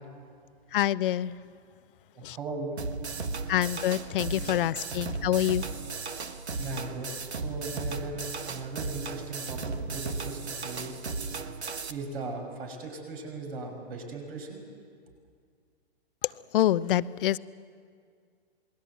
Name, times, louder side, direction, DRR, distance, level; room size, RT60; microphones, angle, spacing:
voice 1, 0.7-1.3 2.2-2.4 3.5-5.6 16.5-17.4, left 13 dB, 55° left, 18 dB, 0.7 m, -26 dB
voice 2, 2.2-2.8 6.6-11.0 11.9-14.6, right 3 dB, 65° right, 3 dB, 5.9 m, -38 dB
sound 1, 2.8-11.9, right 4 dB, 85° right, 1.4 m, -35 dB
27.5 x 21.5 x 8.2 m, 2.1 s
hypercardioid pair, 120°, 32 cm